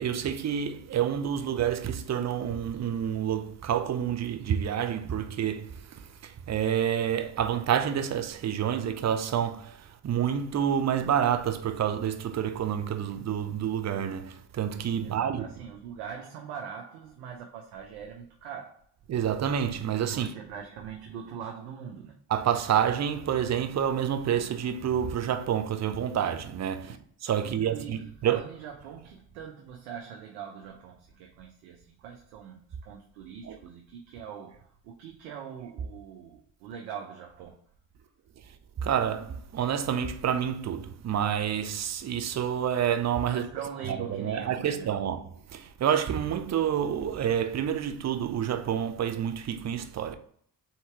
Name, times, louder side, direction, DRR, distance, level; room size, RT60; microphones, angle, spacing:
voice 1, 0.0-15.4 19.1-20.3 22.3-26.9 27.2-28.4 33.4-33.6 38.8-43.5 43.9-50.1, right 9 dB, 35° right, 0.6 m, -28 dB
voice 2, 15.0-18.8 20.1-22.1 26.9-27.0 27.4-37.6 43.3-44.9, right 7 dB, 85° right, 0.7 m, -42 dB
3.7 x 2.8 x 4.4 m
hypercardioid pair, 55°, 45 cm